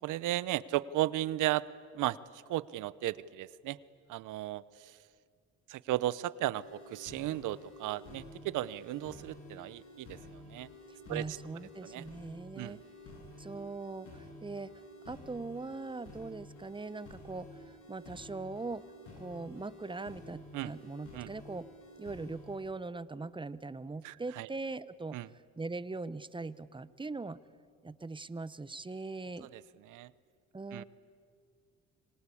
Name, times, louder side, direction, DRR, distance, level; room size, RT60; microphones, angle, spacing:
voice 1, 0.0-1.6 1.9-3.8 4.1-5.0 5.7-10.7 11.1-11.4 11.8-12.0 12.5-12.8 20.5-20.7 21.1-21.3 24.0-24.5 25.1-25.3 29.5-30.1 30.7-30.8, right 15 dB, 85° right, 19 dB, 0.8 m, -35 dB
sound 1, 6.6-22.6, left 1 dB, 90° left, 7.0 m, -51 dB
voice 2, 10.9-12.8 13.4-14.7 15.1-18.8 19.2-21.7 22.0-25.2 25.6-27.4 27.8-29.5 30.5-30.8, right 3 dB, 15° right, 17 dB, 0.9 m, -41 dB
27.0 x 24.5 x 8.5 m, 2.2 s
cardioid pair, 90°, 30 cm